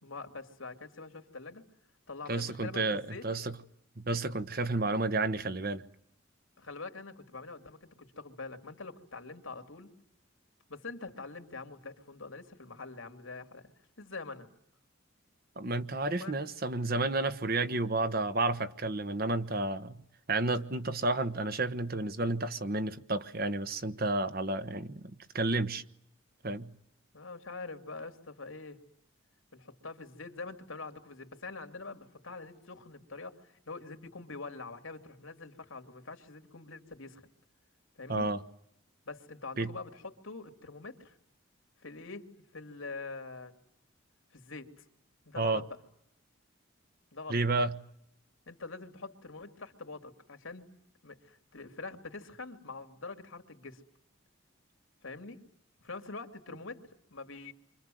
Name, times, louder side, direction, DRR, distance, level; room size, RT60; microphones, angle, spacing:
voice 1, 0.0-1.6 2.1-3.2 6.6-9.9 10.7-13.7 14.0-14.5 16.0-16.5 27.1-28.8 29.5-37.2 38.0-38.3 39.0-41.2 41.8-42.3 42.5-43.5 44.3-44.7 45.2-45.7 47.1-47.4 48.5-50.7 51.0-53.8 55.0-55.4 55.8-56.8 57.1-57.5, left 3 dB, 80° left, 2.9 m, -44 dB
voice 2, 2.3-3.5 4.0-5.8 15.6-19.9 20.3-25.0 25.3-25.8 26.4-26.7 38.1-38.4 39.6-39.7 45.4-45.6 47.3-47.7, right 2 dB, 50° right, 1.2 m, -31 dB
29.0 x 25.0 x 7.9 m
head